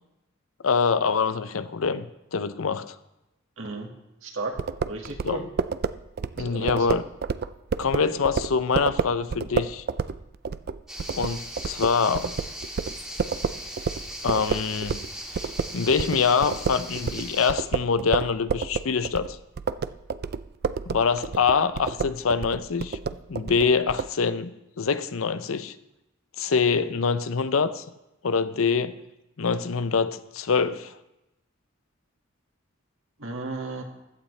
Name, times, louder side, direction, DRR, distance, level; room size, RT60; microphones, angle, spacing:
voice 1, 0.6-2.9 5.2-5.4 6.4-7.0 7.8-9.8 11.2-12.3 14.2-15.0 15.4-15.5 15.7-19.4 20.9-23.0 23.3-25.7 26.4-27.8 28.2-29.0 29.4-30.9, left 5 dB, 80° left, 13 dB, 0.6 m, -25 dB
voice 2, 3.6-3.9 4.2-4.6 4.9-5.4 6.4-6.8 33.2-33.8, right 3 dB, 70° right, 2 dB, 2.0 m, -34 dB
sound 1, 4.6-15.1 15.3-24.1, right 5 dB, 50° right, 0.4 m, -29 dB
sound 2, 10.9-17.5, equal, ahead, 1.9 m, -38 dB
15.5 x 11.5 x 3.3 m, 0.93 s
head